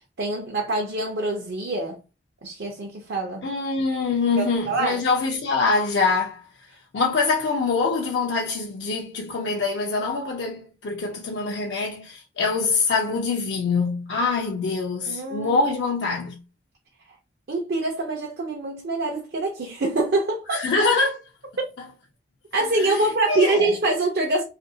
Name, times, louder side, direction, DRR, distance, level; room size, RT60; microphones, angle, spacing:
voice 1, 0.2-2.0 2.4-3.4 4.4-5.0 15.1-15.6 17.5-20.6 21.6-21.7 22.5-24.4, right 2 dB, 60° right, 0.5 m, -25 dB
voice 2, 3.4-6.4 6.9-16.4 20.5-21.2 22.8-23.7, left 4 dB, 65° left, 0.4 m, -24 dB
2.6 x 2.5 x 2.6 m
head